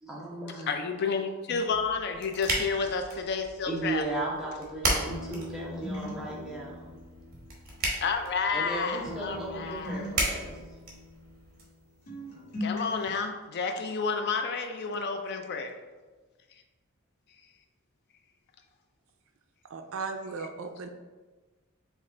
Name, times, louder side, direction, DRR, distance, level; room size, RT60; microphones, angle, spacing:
voice 1, 0.0-0.7 3.7-6.9 8.5-10.5, right 2 dB, ahead, -5 dB, 0.9 m, -36 dB
voice 2, 0.7-4.0 8.0-10.0 12.6-15.7, left 5 dB, 50° left, 6 dB, 0.4 m, -30 dB
sound 1, 1.7-11.6, right 2 dB, 45° right, 1.1 m, -36 dB
sound 2, 5.1-8.7 9.0-11.8 12.1-13.1, left 1 dB, 80° left, 1.4 m, -40 dB
voice 3, 19.6-20.9, right 4 dB, 65° right, 6 dB, 0.4 m, -36 dB
5.2 x 2.4 x 3.7 m, 1.3 s
head